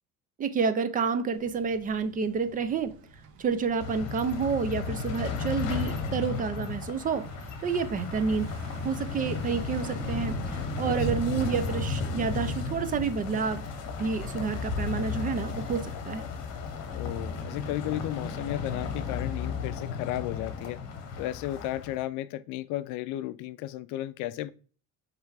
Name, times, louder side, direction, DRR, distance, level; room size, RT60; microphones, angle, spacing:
voice 1, 0.4-3.0 3.4-7.3 7.6-8.5 8.8-13.6 14.0-16.2, right 5 dB, 25° right, 0.4 m, -29 dB
Thunder / Bicycle, 1.3-19.7, right 4 dB, 70° right, 1.0 m, -42 dB
sound 1, 3.8-22.0, left 6 dB, 55° left, 1.1 m, -34 dB
voice 2, 10.8-11.2 16.9-20.8 21.2-24.5, left 14 dB, 75° left, 0.5 m, -34 dB
3.4 x 3.3 x 4.7 m
cardioid pair, 140°, 31 cm